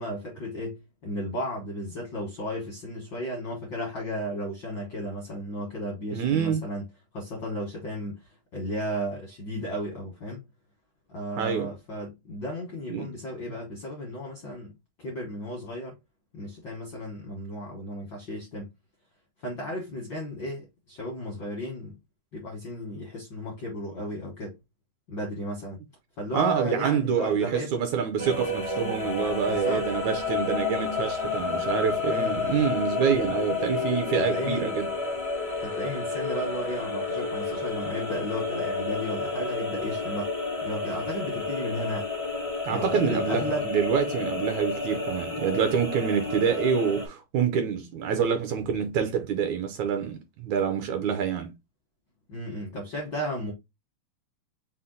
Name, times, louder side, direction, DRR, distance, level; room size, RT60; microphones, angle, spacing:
voice 1, 0.0-6.8 7.1-8.2 8.5-10.4 11.1-14.7 15.0-16.0 16.3-18.7 19.4-21.9 22.3-24.5 25.1-25.8 26.2-27.7 29.5-30.0 32.1-32.6 34.2-34.7 35.6-40.3 40.6-42.1 42.7-43.7 52.3-53.5, equal, 70° left, 1.1 m, -34 dB
voice 2, 6.1-6.7 11.4-11.7 12.9-13.1 26.3-34.9 42.7-51.5, right 7 dB, 75° right, 1.9 m, -26 dB
sound 1, 28.2-47.1, left 4 dB, 30° left, 0.5 m, -30 dB
5.7 x 2.2 x 3.7 m
omnidirectional pair, 3.8 m